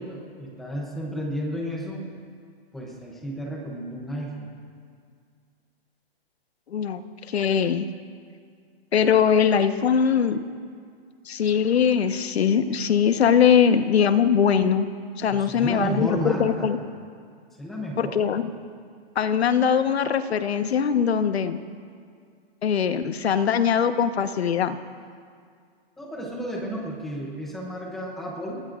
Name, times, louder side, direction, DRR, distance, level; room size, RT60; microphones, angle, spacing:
voice 1, 0.0-2.0 2.7-4.5 15.3-16.7 17.6-18.2 26.0-28.6, right 1 dB, ahead, -3 dB, 0.6 m, -32 dB
voice 2, 6.7-7.9 8.9-10.4 11.3-14.9 15.2-16.8 18.0-18.5 19.1-21.6 22.6-24.8, left 7 dB, 85° left, 10 dB, 1.2 m, -21 dB
28.0 x 20.0 x 2.5 m, 2.1 s
hypercardioid pair, 180°, 31 cm